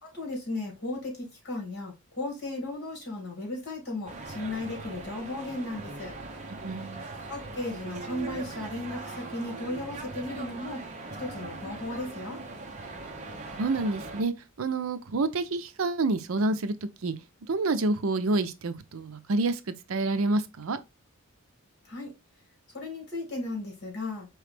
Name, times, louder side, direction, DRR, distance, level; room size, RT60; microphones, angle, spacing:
voice 1, 0.0-6.1 7.3-10.8 11.2-12.4 21.8-22.1 22.7-24.3, left 2 dB, 50° left, 2.3 m, -35 dB
sound 1, 4.1-14.2, right 3 dB, 35° right, 0.9 m, -40 dB
voice 2, 6.6-7.1 13.5-17.1 17.5-19.6 19.9-20.8, right 2 dB, 70° right, 0.6 m, -28 dB
4.8 x 3.1 x 3.3 m
head